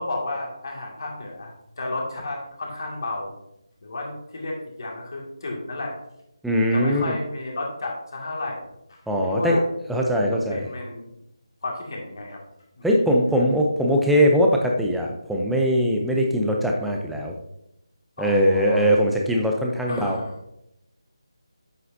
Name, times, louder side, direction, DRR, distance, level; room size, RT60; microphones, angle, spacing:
voice 1, 0.0-3.3 3.8-5.9 6.7-8.6 8.9-9.6 10.5-11.1 11.6-12.4 12.8-12.9 18.2-19.0 19.9-20.4, left 2 dB, 50° left, -1 dB, 2.2 m, -32 dB
voice 2, 6.4-7.1 9.1-9.6 9.9-10.7 12.8-17.3 18.2-20.2, equal, ahead, -1 dB, 0.5 m, -21 dB
8.0 x 7.6 x 2.7 m, 0.82 s
figure-of-eight pair, 165°, 3 cm